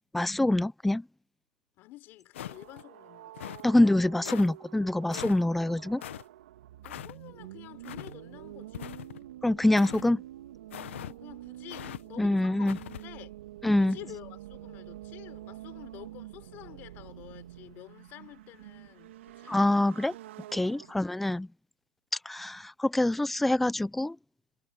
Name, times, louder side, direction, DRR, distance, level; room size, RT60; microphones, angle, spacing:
voice 1, 0.1-1.0 3.6-6.0 9.4-10.2 12.2-12.8 13.6-14.0 19.5-20.1 20.5-21.5 22.3-24.2, left 1 dB, ahead, 0.5 m, -25 dB
voice 2, 1.8-3.6 6.8-9.2 9.6-9.9 11.0-13.4 13.8-19.6 20.8-21.1, left 17 dB, 25° left, 5.3 m, -50 dB
sound 1, 2.3-2.8 3.3-3.7 4.2-4.5 5.1-5.4 6.0-6.2 6.8-7.1 7.8-8.1 8.7-9.2 9.8-10.1 10.7-11.1 11.7-12.0 12.7-13.0, left 12 dB, 55° left, 1.3 m, -41 dB
sound 2, 2.4-21.5, right 14 dB, 55° right, 2.8 m, -47 dB
hypercardioid pair, 160°, 8 cm